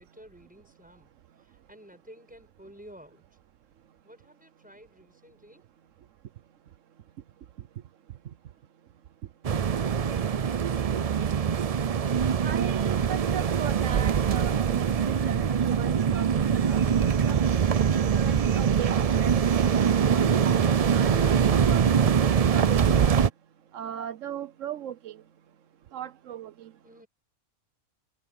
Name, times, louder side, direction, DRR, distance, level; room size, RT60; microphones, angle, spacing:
voice 1, 0.0-3.4 4.0-5.7 8.5-8.7 9.2-9.3 26.8-27.1, equal, 5° right, 6.7 m, -52 dB
sound 1, 9.4-23.3, right 7 dB, 50° right, 0.4 m, -23 dB
voice 2, 12.4-17.4 18.0-18.9 19.2-20.7 20.9-23.2 23.7-25.2 25.9-26.7, right 10 dB, 75° right, 1.1 m, -38 dB
omnidirectional pair, 1.3 m